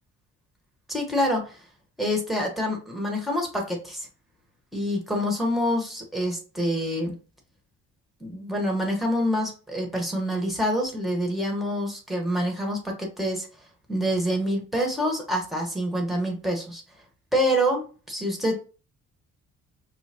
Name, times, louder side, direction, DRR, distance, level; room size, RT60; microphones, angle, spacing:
voice 1, 0.9-1.6 2.0-4.1 4.7-7.1 8.2-13.5 13.9-16.8 17.3-18.6, equal, ahead, 1 dB, 1.6 m, -26 dB
5.6 x 2.3 x 2.9 m, 0.35 s
cardioid pair, 90°, 30 cm